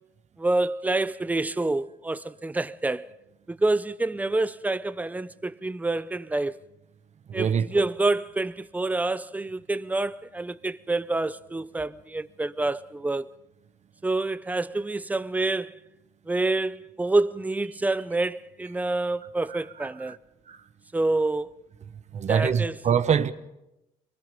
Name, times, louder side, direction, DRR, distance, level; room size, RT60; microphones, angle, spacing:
voice 1, 0.4-3.1 3.5-6.6 7.3-13.3 14.0-15.8 16.3-20.2 20.9-21.5 22.3-22.8, right 2 dB, 10° right, 0.6 m, -27 dB
voice 2, 7.3-7.8 20.1-20.2 20.5-20.6 22.1-23.3, right 7 dB, 45° right, 1.1 m, -24 dB
24.0 x 22.0 x 5.4 m
cardioid pair, 110°, 17 cm